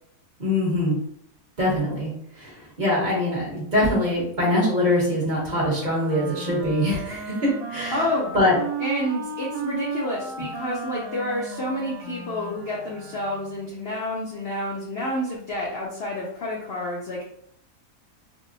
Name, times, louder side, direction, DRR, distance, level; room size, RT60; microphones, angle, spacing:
voice 1, 0.4-1.0 1.6-2.1 2.4-8.0 8.3-8.5, left 1 dB, 35° right, -5 dB, 0.8 m, -23 dB
Wind instrument woodwind instrument, 5.5-13.6, right 5 dB, 80° right, 0.5 m, -34 dB
voice 2, 7.9-8.3 8.8-17.2, left 1 dB, 85° left, -3 dB, 0.5 m, -29 dB
3.5 x 2.1 x 2.6 m, 0.74 s
omnidirectional pair, 1.7 m